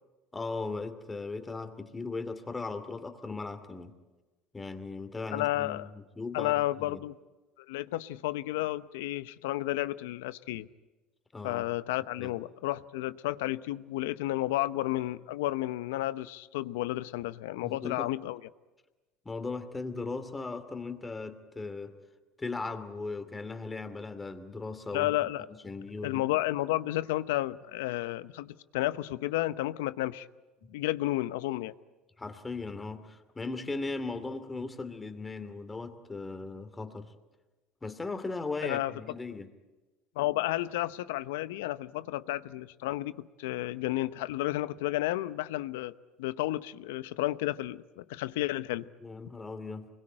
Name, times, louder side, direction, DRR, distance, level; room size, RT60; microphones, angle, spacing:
voice 1, 0.3-4.0 4.5-6.5 6.8-7.0 11.3-11.7 12.2-12.3 17.6-18.1 19.2-22.0 22.4-25.1 25.5-26.2 32.2-37.1 37.8-39.5 49.0-49.9, left 3 dB, 15° left, 9 dB, 2.6 m, -38 dB
voice 2, 5.3-5.9 6.3-7.1 7.7-10.7 11.4-18.4 24.9-25.5 26.0-30.3 30.7-31.7 38.6-38.9 40.2-45.9 46.2-48.9, left 16 dB, 90° left, 15 dB, 0.8 m, -32 dB
25.5 x 22.0 x 8.8 m, 1.2 s
supercardioid pair, 105°, 0 cm